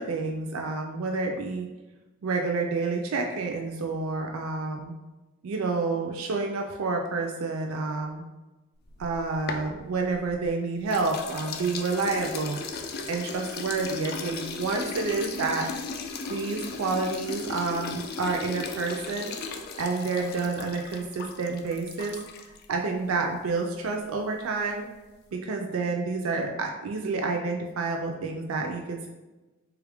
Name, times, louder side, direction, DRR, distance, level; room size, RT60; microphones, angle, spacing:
voice 1, 0.0-1.7 2.2-4.9 5.4-8.2 9.0-12.6 13.1-15.7 16.3-19.3 19.8-22.2 22.7-24.9 25.4-29.1, right 3 dB, 85° right, 2 dB, 0.4 m, -29 dB
sound 1, 8.9-10.5 10.9-22.6, left 4 dB, 50° left, 0.3 m, -37 dB
3.2 x 2.4 x 3.4 m, 1.1 s
head